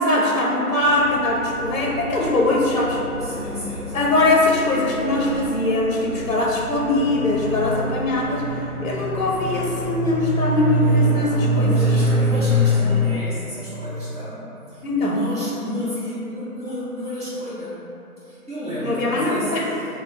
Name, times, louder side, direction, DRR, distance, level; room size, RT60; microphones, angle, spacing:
voice 1, 0.0-3.0 3.9-8.4 8.8-12.0 14.8-15.2 18.8-19.7, left 2 dB, 60° left, -1 dB, 0.5 m, -21 dB
sound 1, 0.8-13.1, equal, 45° right, 0.6 m, -25 dB
voice 2, 3.2-4.1 11.3-17.8 18.2-19.5, left 1 dB, 25° right, -15 dB, 1.1 m, -32 dB
3.4 x 2.0 x 3.4 m, 3.0 s
figure-of-eight pair, 165°, 46 cm